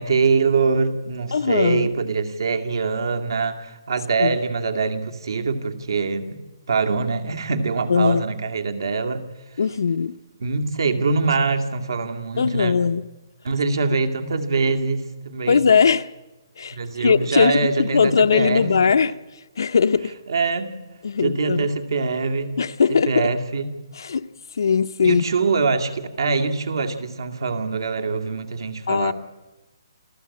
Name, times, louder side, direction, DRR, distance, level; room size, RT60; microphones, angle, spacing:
voice 1, 0.0-6.4 6.7-9.2 10.4-12.7 13.4-15.6 16.7-19.0 20.3-20.8 21.2-22.5 22.9-23.7 25.0-29.1, right 4 dB, 70° right, 2.3 m, -23 dB
voice 2, 1.3-1.9 4.2-4.4 7.9-8.3 9.6-10.2 12.4-13.0 15.5-16.1 16.6-19.1 19.6-20.1 21.0-21.7 22.6-23.3 23.9-24.2 24.6-25.2 28.9-29.1, left 6 dB, 65° left, 0.7 m, -19 dB
27.5 x 14.0 x 8.6 m
hypercardioid pair, 175°, 2 cm